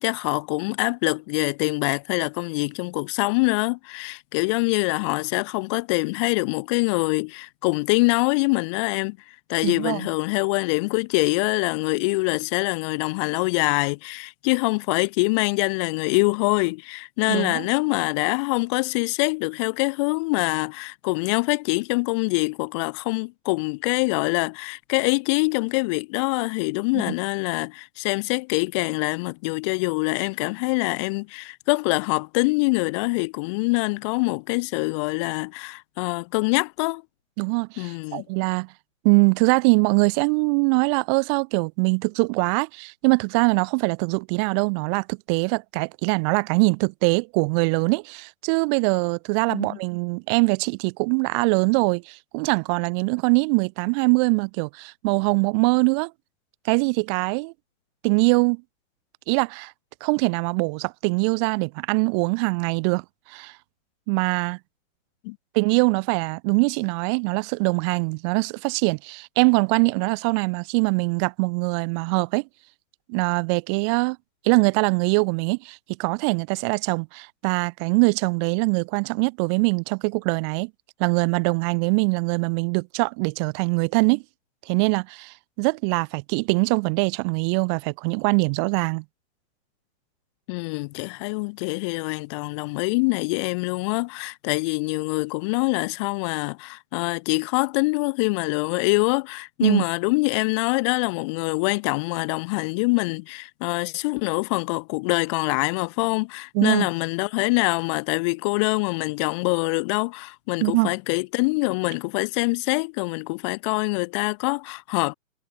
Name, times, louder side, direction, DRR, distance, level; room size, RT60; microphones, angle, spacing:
voice 1, 0.0-9.2 9.5-37.0 37.8-38.2 49.5-49.8 65.2-65.4 90.5-115.1, left 28 dB, 20° left, 1.1 m, -24 dB
voice 2, 9.6-10.1 17.3-17.7 37.4-38.7 39.0-56.1 56.6-57.5 58.0-58.6 59.3-59.7 60.0-63.0 63.3-63.5 64.1-64.6 65.5-72.4 73.1-74.2 74.4-80.7 81.0-84.2 84.7-89.0 99.6-99.8 106.5-106.9 110.6-110.9, right 36 dB, 20° right, 1.1 m, -22 dB
hypercardioid pair, 145°, 41 cm